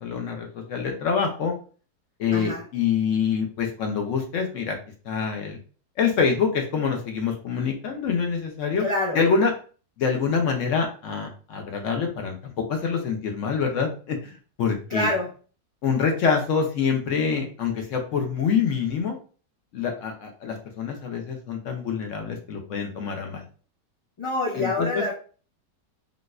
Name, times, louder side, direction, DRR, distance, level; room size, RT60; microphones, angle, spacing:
voice 1, 0.0-1.5 2.2-4.8 5.0-5.6 6.0-8.8 9.1-9.5 10.0-14.3 14.6-15.1 15.8-19.2 19.7-23.4 24.5-25.0, left 6 dB, 65° left, 3 dB, 0.8 m, -25 dB
voice 2, 2.3-2.6 8.8-9.2 14.9-15.3 24.2-25.1, left 1 dB, 40° left, -4 dB, 0.4 m, -26 dB
3.9 x 2.5 x 2.3 m, 0.39 s
omnidirectional pair, 1.7 m